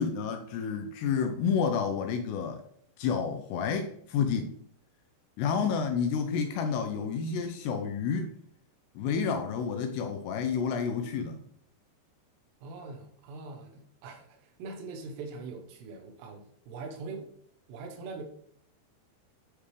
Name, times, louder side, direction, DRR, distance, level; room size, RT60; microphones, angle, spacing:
voice 1, 0.0-2.6 3.0-4.5 5.4-8.4 9.0-11.4, left 6 dB, 80° left, 2.5 m, -30 dB
voice 2, 12.6-17.3 17.7-18.2, right 4 dB, 75° right, 3.0 m, -42 dB
9.4 x 3.5 x 3.2 m
omnidirectional pair, 5.1 m